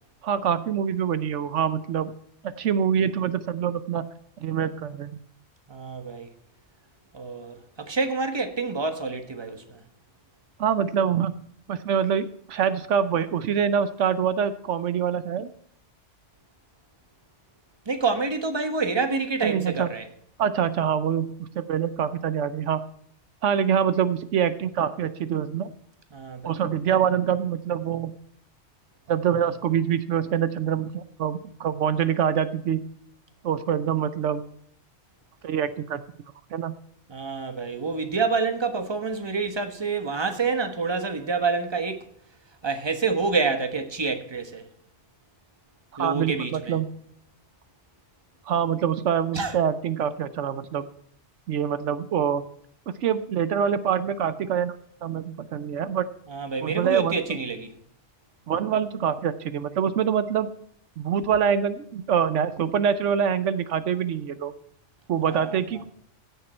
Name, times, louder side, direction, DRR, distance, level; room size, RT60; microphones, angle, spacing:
voice 1, 0.2-2.1 2.4-4.1 4.4-5.2 10.6-11.3 11.7-15.5 19.4-19.9 20.4-22.8 23.4-25.7 26.4-28.1 29.1-32.8 33.4-34.4 35.4-36.0 36.5-36.7 46.0-46.9 48.5-50.9 51.5-52.5 53.0-56.1 56.6-57.2 58.5-60.5 61.0-64.5 65.1-65.8, right 8 dB, 80° right, 1.1 m, -25 dB
voice 2, 5.7-6.3 7.1-9.8 17.9-20.0 26.1-26.6 37.1-42.0 42.6-44.6 46.0-46.8 49.3-49.5 56.3-57.7 65.3-65.5, right 4 dB, 20° right, 1.3 m, -27 dB
15.5 x 6.9 x 4.3 m
omnidirectional pair, 1.2 m